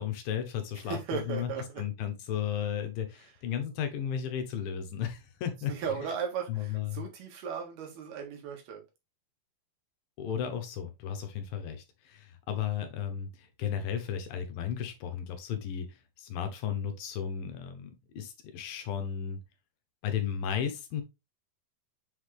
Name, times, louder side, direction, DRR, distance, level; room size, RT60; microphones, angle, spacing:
voice 1, 0.0-5.8 6.5-7.0 10.2-19.4 20.0-21.0, left 9 dB, 75° left, 2.6 m, -34 dB
voice 2, 0.8-1.8 5.7-8.8, right 7 dB, 80° right, 3.7 m, -36 dB
7.4 x 4.0 x 3.3 m
omnidirectional pair, 4.4 m